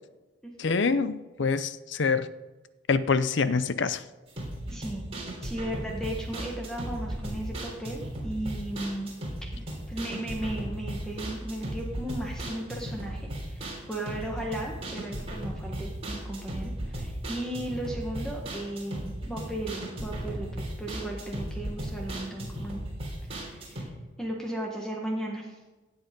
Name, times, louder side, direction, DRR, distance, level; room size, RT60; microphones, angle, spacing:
voice 1, 0.6-2.3 2.9-4.0, left 4 dB, 60° left, 14 dB, 0.6 m, -25 dB
sound 1, 4.3-23.8, right 1 dB, 30° right, 3.3 m, -36 dB
voice 2, 4.7-5.0 5.4-9.1 9.9-22.8 23.3-23.9 24.2-25.6, right 1 dB, 5° left, -1 dB, 1.4 m, -36 dB
16.0 x 8.1 x 5.3 m, 1.2 s
head